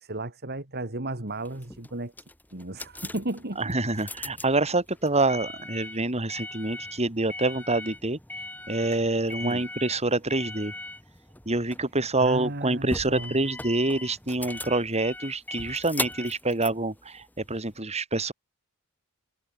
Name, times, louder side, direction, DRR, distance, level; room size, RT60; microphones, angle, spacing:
voice 1, 0.0-2.1 2.5-3.6 9.4-9.6 12.2-13.4, right 1 dB, 45° right, 3.1 m, -34 dB
sound 1, 1.4-17.8, left 2 dB, 10° left, 4.3 m, -39 dB
voice 2, 3.6-8.2 8.7-10.7 11.5-18.3, right 2 dB, 30° right, 4.7 m, -26 dB
head